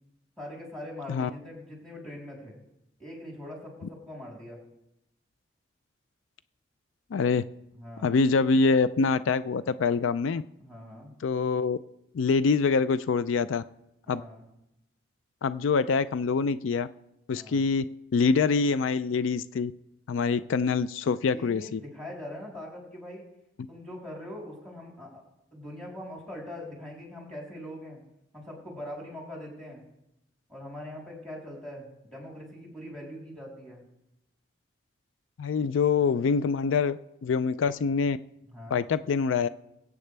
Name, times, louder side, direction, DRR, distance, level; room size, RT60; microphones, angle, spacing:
voice 1, 0.4-2.5 3.0-4.6 7.7-8.2 10.6-11.1 14.1-14.4 17.3-17.6 20.1-20.5 21.2-23.3 23.7-25.2 25.5-28.0 28.3-29.8 30.5-33.8 38.5-38.8, left 1 dB, ahead, -3 dB, 3.5 m, -42 dB
voice 2, 7.1-7.4 8.0-10.4 11.2-11.8 12.1-13.6 14.1-14.2 15.4-16.9 17.3-17.8 18.1-19.7 20.1-21.8 35.4-38.2 38.7-39.5, left 5 dB, 90° left, 15 dB, 0.4 m, -25 dB
22.5 x 8.3 x 3.4 m, 0.86 s
head